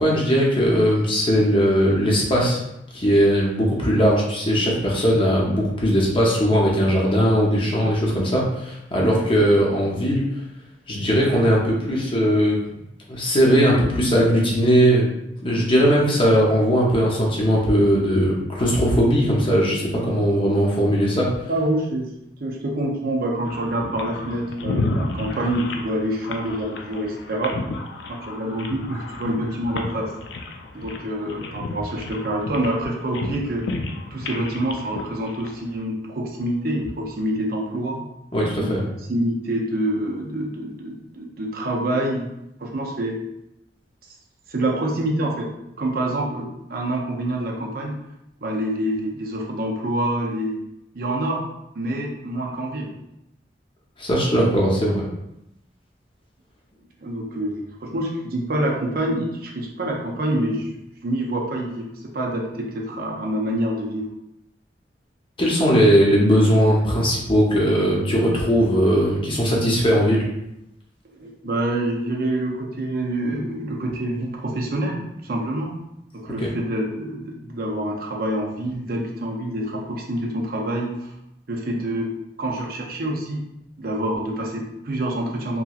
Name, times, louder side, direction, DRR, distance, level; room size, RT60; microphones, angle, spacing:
voice 1, 0.0-2.6 2.9-10.2 10.9-12.6 13.1-15.1 15.4-21.3 38.3-38.8 54.0-55.1 65.4-70.2 76.4-76.5, equal, 30° left, -3 dB, 0.6 m, -19 dB
voice 2, 21.5-22.1 22.4-27.6 28.1-30.1 30.7-33.7 34.1-38.0 38.6-42.3 42.6-43.2 44.5-45.5 45.8-48.0 48.4-50.6 50.9-51.4 51.7-52.9 57.0-60.7 61.0-61.9 62.1-64.1 71.2-75.7 76.1-81.1 81.5-82.1 82.4-83.4 83.8-85.6, right 1 dB, 55° right, -1 dB, 0.5 m, -26 dB
sound 1, 23.5-35.8, left 2 dB, 75° left, 0.4 m, -32 dB
2.9 x 2.7 x 2.4 m, 0.85 s
head